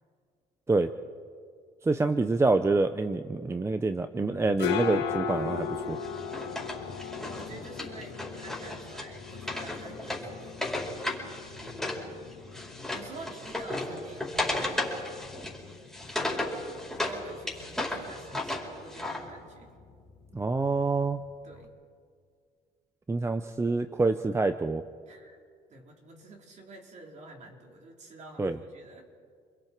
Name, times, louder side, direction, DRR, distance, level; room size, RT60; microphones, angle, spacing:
voice 1, 1.9-6.0 20.3-21.2 23.1-24.8 28.4-28.6, right 3 dB, 15° right, 10 dB, 0.7 m, -26 dB
sound 1, 4.2-21.6, left 7 dB, 85° left, 2.2 m, -39 dB
Wood, 6.0-12.0 12.3-17.2 17.5-19.2, left 1 dB, ahead, 5.0 m, -34 dB
voice 2, 7.2-10.7 11.6-12.5 12.9-15.0 16.1-16.7 17.0-19.7 21.4-21.7 25.1-25.4 25.7-29.1, right 2 dB, 45° right, 0 dB, 4.3 m, -48 dB
30.0 x 22.0 x 4.6 m, 2.1 s
cardioid pair, 110°, 17 cm